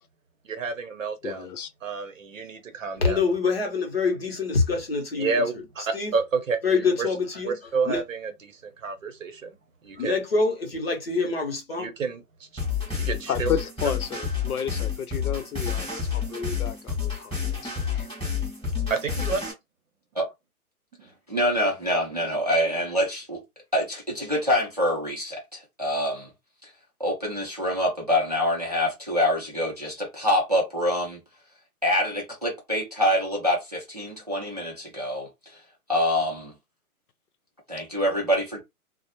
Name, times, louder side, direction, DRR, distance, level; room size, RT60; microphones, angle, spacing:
voice 1, 0.4-1.5 1.8-3.2 5.2-6.6 7.0-7.1 7.4-9.6 9.8-10.2 11.8-12.6 12.9-13.5 18.7-19.4, right 4 dB, 60° right, 0.8 m, -30 dB
voice 2, 1.2-1.7 13.3-18.1, left 8 dB, 75° left, 0.6 m, -32 dB
voice 3, 3.0-5.4 5.9-6.1 6.6-7.5 7.8-8.0 10.0-11.9, left 4 dB, 40° left, 0.7 m, -25 dB
sound 1, 12.6-19.5, left 7 dB, 5° left, 0.8 m, -29 dB
voice 4, 21.3-23.4 23.7-26.3 27.0-31.2 31.8-35.3 35.9-36.5 37.7-38.6, equal, 30° right, 0.5 m, -25 dB
2.3 x 2.0 x 2.9 m
hypercardioid pair, 175°, 44 cm